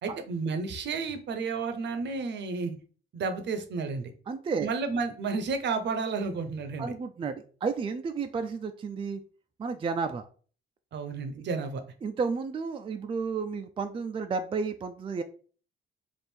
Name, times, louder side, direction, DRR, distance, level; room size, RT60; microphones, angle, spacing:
voice 1, 0.0-2.8 3.1-4.1 4.6-6.9 10.9-11.8, right 4 dB, 65° right, 8 dB, 0.7 m, -31 dB
voice 2, 4.3-4.7 6.8-9.2 9.6-10.3 11.4-11.5 12.0-15.2, right 5 dB, 25° right, 7 dB, 0.4 m, -32 dB
3.5 x 2.5 x 4.3 m, 0.42 s
cardioid pair, 90°, 20 cm